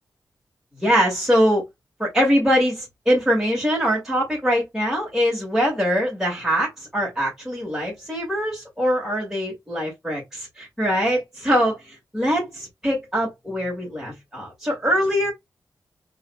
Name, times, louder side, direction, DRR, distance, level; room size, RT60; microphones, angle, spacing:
voice 1, 0.8-1.6 2.0-15.3, equal, 5° right, 2.0 m, -23 dB
4.0 x 2.8 x 2.2 m
wide cardioid pair, 95°, 7 cm